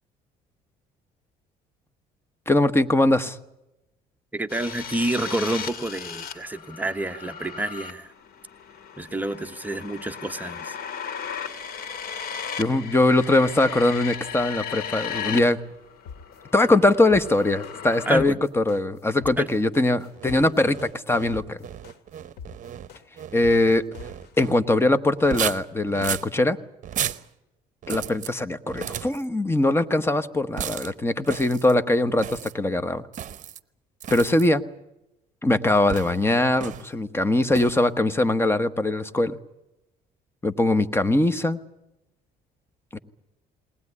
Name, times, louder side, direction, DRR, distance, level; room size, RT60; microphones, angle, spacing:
voice 1, 2.5-3.4 12.6-15.6 16.5-21.6 23.3-23.8 24.4-26.6 27.9-33.0 34.1-34.6 35.4-39.4 40.4-41.6 42.9-43.0, left 2 dB, 15° left, 11 dB, 1.2 m, -21 dB
voice 2, 4.3-8.1 9.0-10.8 18.1-18.4 19.4-19.5, right 1 dB, 10° right, 7 dB, 1.1 m, -29 dB
sound 1, 4.5-15.4 15.7-18.1, left 7 dB, 60° left, 2.7 m, -36 dB
sound 2, 16.1-24.4, left 6 dB, 80° left, 2.2 m, -43 dB
sound 3, 20.2-24.6 25.2-26.3 26.8-27.3 27.8-28.3 28.7-29.2 30.6-30.9 31.2-31.7 32.2-32.5 33.1-33.6 34.0-34.5 35.9-36.2 36.6-36.9 37.5-37.8, right 10 dB, 50° right, 0.9 m, -34 dB
21.0 x 19.0 x 9.8 m, 0.93 s
cardioid pair, 110°, 17 cm